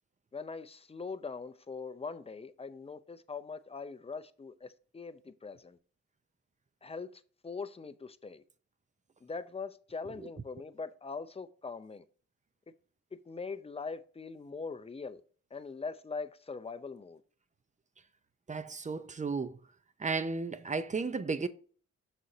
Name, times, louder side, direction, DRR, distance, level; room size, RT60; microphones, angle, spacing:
voice 1, 0.3-5.8 6.8-8.4 9.2-12.0 13.1-15.2 15.5-17.2, left 4 dB, 20° left, 0.5 m, -42 dB
voice 2, 18.5-19.5 20.0-21.5, right 4 dB, 25° right, 0.6 m, -33 dB
6.2 x 4.1 x 3.9 m
cardioid pair, 70°, 29 cm